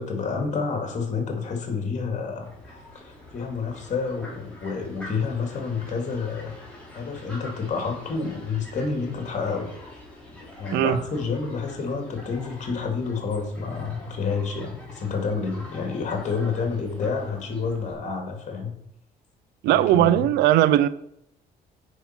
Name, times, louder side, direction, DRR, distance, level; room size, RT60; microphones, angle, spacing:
voice 1, 0.0-6.5 6.9-9.7 10.3-18.7 19.7-20.2, left 5 dB, 45° left, 2.6 m, -29 dB
Fowl, 2.4-17.9, left 1 dB, 5° left, 3.8 m, -45 dB
voice 2, 19.6-20.9, right 13 dB, 80° right, 0.6 m, -18 dB
8.2 x 5.6 x 5.9 m
cardioid pair, 110°, 17 cm